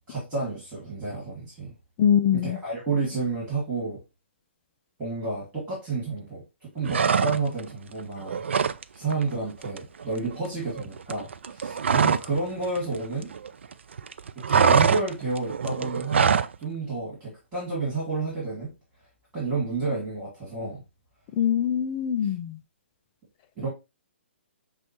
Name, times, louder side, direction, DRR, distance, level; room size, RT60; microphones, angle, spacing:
voice 1, 0.1-1.7 2.3-4.0 5.0-6.4 6.7-8.4 8.9-13.3 14.4-16.3 16.6-18.7 19.3-20.8 23.6-23.7, right 3 dB, 15° right, 2.2 m, -30 dB
voice 2, 2.0-2.6 21.4-22.6, left 9 dB, 30° left, 0.4 m, -23 dB
sound 1, 6.9-7.7 8.0-8.8 9.1-9.3 9.6-12.4 12.6-13.7 14.0-16.6, right 6 dB, 70° right, 0.3 m, -23 dB
6.2 x 2.3 x 3.0 m
figure-of-eight pair, 135°, 7 cm